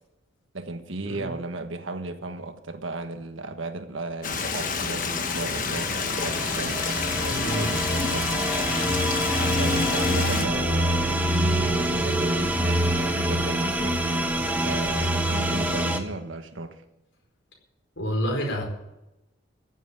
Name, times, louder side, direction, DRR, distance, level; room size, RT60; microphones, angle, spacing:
voice 1, 0.5-8.6 9.6-16.8, right 2 dB, 70° right, 7 dB, 1.4 m, -35 dB
Stream, 4.2-10.5, left 5 dB, 40° left, 1.3 m, -29 dB
sound 1, 5.0-16.0, right 1 dB, 10° right, 1.2 m, -26 dB
voice 2, 7.3-7.7 18.0-18.6, equal, 65° left, 1 dB, 4.7 m, -28 dB
15.0 x 8.2 x 8.9 m, 0.94 s
head